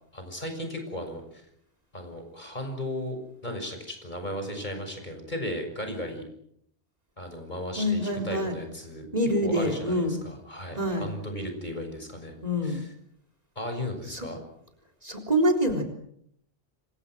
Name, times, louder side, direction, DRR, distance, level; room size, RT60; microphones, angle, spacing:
voice 1, 0.1-1.4 1.9-3.2 3.4-6.2 7.2-12.3 12.6-12.9 13.5-14.4, left 1 dB, 45° left, 5 dB, 6.7 m, -35 dB
voice 2, 7.8-8.5 9.1-10.1 10.7-11.1 12.4-12.8 14.1-14.3 15.0-15.8, equal, 35° right, 7 dB, 3.9 m, -26 dB
27.5 x 25.5 x 6.2 m, 0.70 s
omnidirectional pair, 1.1 m